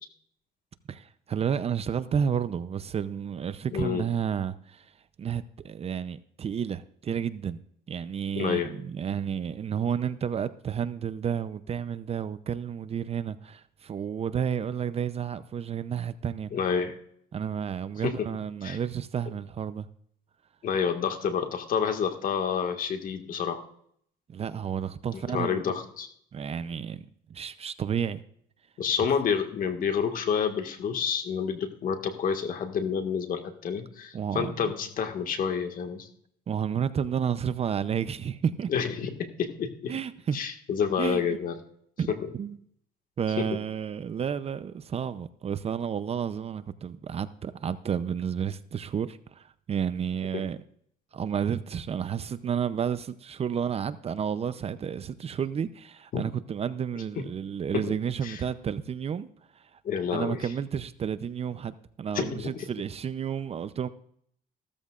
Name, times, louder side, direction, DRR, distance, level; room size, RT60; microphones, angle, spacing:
voice 1, 0.9-4.9 5.2-7.6 7.9-16.5 17.3-19.9 24.3-25.6 26.3-27.0 27.3-28.2 34.1-34.7 36.5-38.7 39.9-40.4 41.0-41.2 42.0-42.6 43.2-50.6 51.1-59.3 59.5-59.8 60.1-63.9, right 7 dB, 35° right, 0.6 m, -31 dB
voice 2, 3.7-4.0 8.3-8.7 16.5-17.0 18.0-18.1 18.6-18.8 20.6-23.6 25.3-26.1 28.8-36.1 38.7-39.9 40.3-41.5 42.1-42.2 56.1-56.2 57.7-57.8 58.2-58.4 59.8-60.4 62.1-62.6, left 7 dB, 55° left, 1.8 m, -29 dB
15.5 x 13.5 x 2.5 m
cardioid pair, 110°, 17 cm